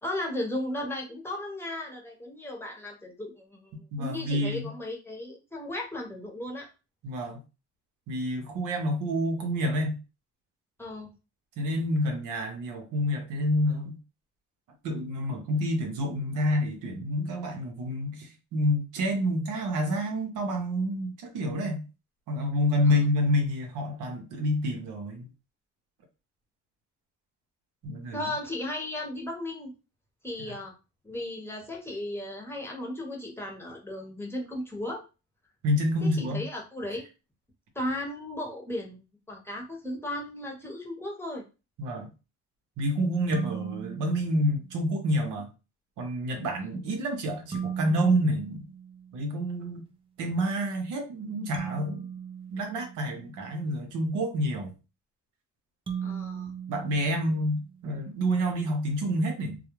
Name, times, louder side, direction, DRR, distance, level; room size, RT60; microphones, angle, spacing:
voice 1, 0.0-6.7 10.8-11.1 22.9-23.0 28.1-29.7 30.2-30.7 31.0-35.0 36.0-37.0 37.7-39.0 39.3-41.4 46.3-46.5 56.0-56.6, left 1 dB, 10° left, 0.8 m, -35 dB
voice 2, 3.9-4.7 7.0-7.4 8.1-9.9 11.6-14.0 14.8-21.8 22.3-25.2 27.8-28.3 35.6-36.4 41.8-42.1 42.8-45.5 46.0-48.7 49.1-49.8 50.2-52.1 52.5-54.7 56.7-59.6, equal, 90° right, 0.7 m, -28 dB
sound 1, 43.3-45.0 47.5-49.5 51.5-53.7 55.9-57.9, right 7 dB, 20° right, 0.4 m, -38 dB
2.3 x 2.0 x 2.9 m
cardioid pair, 90°, 30 cm